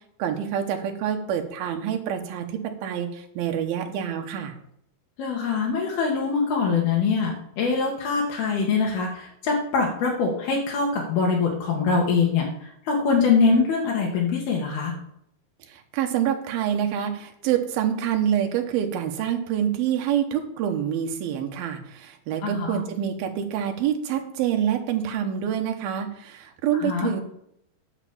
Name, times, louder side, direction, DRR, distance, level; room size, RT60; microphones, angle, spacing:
voice 1, 0.2-4.5 15.7-27.2, right 9 dB, 80° right, 4 dB, 3.0 m, -26 dB
voice 2, 5.2-12.5 12.9-15.0 22.4-22.8 26.8-27.1, left 5 dB, 85° left, -2 dB, 3.5 m, -23 dB
10.5 x 5.1 x 7.2 m, 0.74 s
omnidirectional pair, 4.3 m